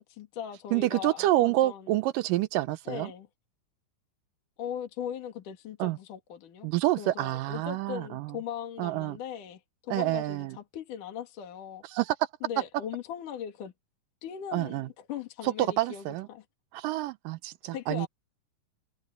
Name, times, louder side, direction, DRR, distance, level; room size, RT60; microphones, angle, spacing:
voice 1, 0.0-2.0 2.9-3.3 4.6-6.7 7.0-11.8 12.4-13.7 14.2-16.4 17.7-18.1, left 9 dB, 65° left, 3.6 m, -39 dB
voice 2, 0.7-3.1 5.8-6.0 6.6-8.4 8.8-9.2 9.9-10.6 11.9-12.2 14.5-14.9 15.4-16.3 16.7-18.1, right 16 dB, 80° right, 2.2 m, -28 dB
omnidirectional pair, 4.2 m